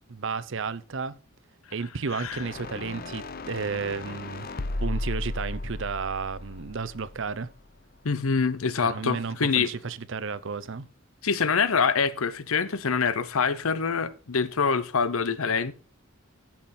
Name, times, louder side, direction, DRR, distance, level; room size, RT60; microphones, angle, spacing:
voice 1, 0.1-1.1 1.7-4.5 4.8-7.5 8.9-10.9, right 5 dB, 60° right, 0.7 m, -32 dB
voice 2, 2.1-2.4 8.0-9.7 11.2-15.7, left 5 dB, 80° left, 0.8 m, -25 dB
sound 1, 2.3-7.5, left 2 dB, 45° left, 0.7 m, -35 dB
14.5 x 6.0 x 4.3 m
head